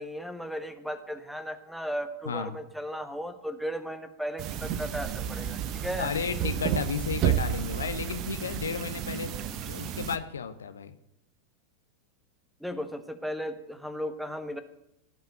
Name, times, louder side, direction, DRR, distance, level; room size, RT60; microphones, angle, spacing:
voice 1, 0.0-6.1 9.4-9.5 12.6-14.6, equal, ahead, 10 dB, 1.4 m, -36 dB
sound 1, 4.4-10.2, right 10 dB, 35° right, 1.0 m, -31 dB
voice 2, 6.0-9.4 9.6-10.9, left 6 dB, 70° left, 10 dB, 1.0 m, -33 dB
17.0 x 5.8 x 9.0 m, 0.79 s
figure-of-eight pair, 90°, 0 cm